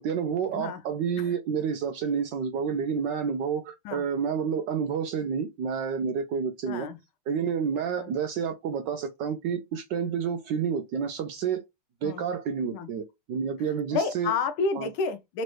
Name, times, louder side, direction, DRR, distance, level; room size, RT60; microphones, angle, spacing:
voice 1, 0.0-6.9 7.3-11.6 12.0-14.3 14.8-14.9, right 6 dB, 75° right, 1.1 m, -29 dB
voice 2, 6.7-7.0 8.0-8.1 12.0-12.2 12.7-12.9 13.9-15.4, left 4 dB, 75° left, 1.5 m, -30 dB
4.2 x 3.1 x 3.0 m
omnidirectional pair, 2.3 m